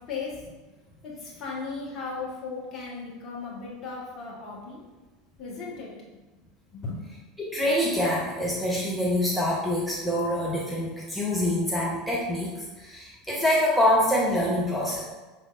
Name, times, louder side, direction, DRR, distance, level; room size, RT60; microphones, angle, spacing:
voice 1, 1.0-4.8 5.4-5.9 6.7-7.0, left 4 dB, 35° left, -4 dB, 1.2 m, -36 dB
voice 2, 7.4-15.1, left 1 dB, 5° left, -5 dB, 0.7 m, -25 dB
5.4 x 3.2 x 2.4 m, 1.2 s
figure-of-eight pair, 75°, 0 cm